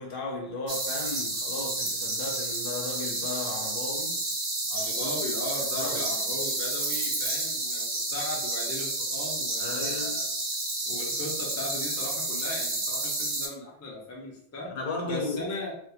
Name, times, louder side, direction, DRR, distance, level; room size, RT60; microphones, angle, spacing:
voice 1, 0.0-4.2 5.7-6.0 9.6-10.2 14.7-15.5, left 2 dB, 60° left, 0.7 m, -35 dB
sound 1, 0.7-13.5, right 2 dB, 70° right, 1.0 m, -30 dB
voice 2, 4.7-10.2 10.9-14.7 15.1-15.7, left 1 dB, 25° left, 0.3 m, -37 dB
2.8 x 2.2 x 2.3 m
omnidirectional pair, 1.1 m